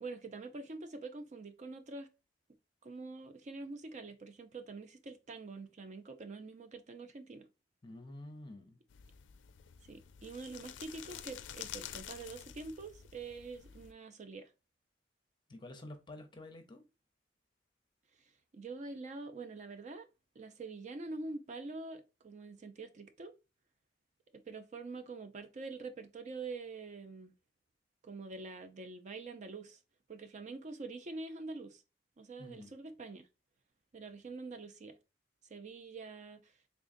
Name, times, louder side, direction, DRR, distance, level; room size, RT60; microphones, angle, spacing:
voice 1, 0.0-2.1 2.8-7.5 9.8-14.5 18.5-20.1 20.4-23.3 24.3-27.3 28.0-29.8 30.1-31.8 32.2-33.2 33.9-35.0 35.4-36.5, right 3 dB, 40° right, 0.4 m, -45 dB
voice 2, 7.8-8.8 15.5-16.8 32.4-32.7, left 1 dB, 25° left, 0.7 m, -49 dB
sound 1, 8.9-13.9, left 10 dB, 75° left, 0.4 m, -49 dB
3.8 x 3.4 x 2.5 m
head